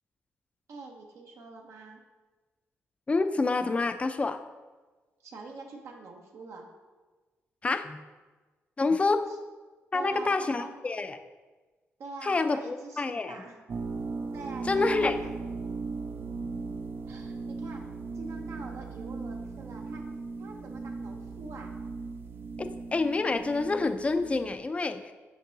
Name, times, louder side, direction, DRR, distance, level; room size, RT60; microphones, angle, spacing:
voice 1, 0.7-2.0 5.2-6.7 9.3-9.4 9.9-10.7 12.0-13.6 14.3-15.4 17.1-17.8 18.1-20.0 20.4-21.7, right 3 dB, 75° right, 1 dB, 0.8 m, -44 dB
voice 2, 3.1-4.4 7.6-8.0 8.8-9.3 9.9-11.2 12.2-13.4 14.6-15.2 22.6-25.0, left 3 dB, 25° left, 9 dB, 0.4 m, -27 dB
sound 1, 13.7-24.5, right 4 dB, 45° right, 0.4 m, -38 dB
5.3 x 4.6 x 3.9 m, 1.3 s
cardioid pair, 85°, 5 cm